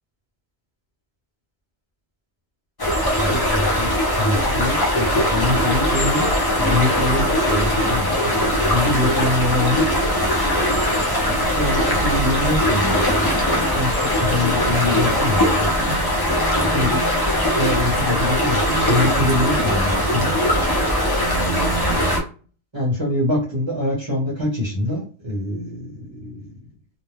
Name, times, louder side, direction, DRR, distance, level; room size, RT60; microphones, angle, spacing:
sound 1, 2.8-22.2, equal, 30° left, 0.4 m, -20 dB
voice 1, 3.1-6.3 6.6-9.9 10.8-13.4 13.7-16.0 16.6-17.0 17.3-20.5 22.7-26.5, left 2 dB, 25° right, -6 dB, 1.0 m, -25 dB
2.5 x 2.1 x 3.4 m, 0.38 s
omnidirectional pair, 1.3 m